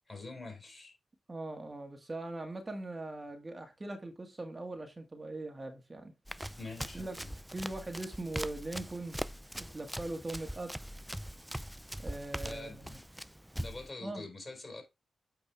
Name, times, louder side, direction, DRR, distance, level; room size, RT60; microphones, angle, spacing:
voice 1, 0.1-0.9 6.6-7.3 12.4-13.0 13.6-14.8, left 3 dB, 30° left, 4.8 m, -45 dB
voice 2, 1.3-6.1 6.9-7.2 7.5-9.2 9.6-10.8 12.0-13.0 14.0-14.3, right 2 dB, 30° right, 1.9 m, -41 dB
Run, 6.3-13.9, equal, 5° right, 0.4 m, -42 dB
8.7 x 5.2 x 3.4 m
cardioid pair, 55°, 0 cm